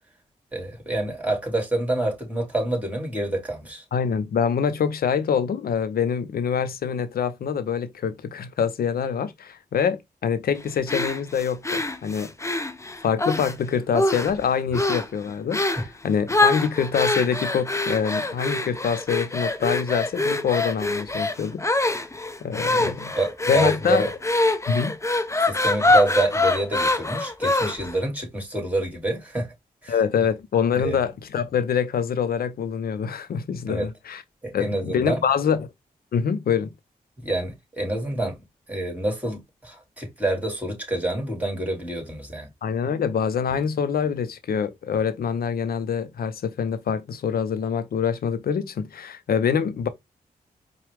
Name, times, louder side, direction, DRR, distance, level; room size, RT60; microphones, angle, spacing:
voice 1, 0.5-3.8 15.8-15.9 22.8-24.1 25.4-29.5 29.8-29.9 30.8-31.0 33.7-33.9 34.4-35.2 37.2-38.4 38.7-42.5, right 1 dB, 10° right, 2.5 m, -27 dB
voice 2, 3.9-12.3 13.0-22.1 22.4-23.1 23.5-24.1 24.7-25.0 29.9-34.2 34.5-35.7 36.1-36.7 42.6-49.9, left 7 dB, 70° left, 0.6 m, -25 dB
sound 1, 10.9-13.5 13.9-14.4 14.7-15.1 15.5-15.9 16.3-28.0, left 2 dB, 20° left, 0.7 m, -24 dB
4.7 x 2.3 x 3.4 m
supercardioid pair, 45°, 16 cm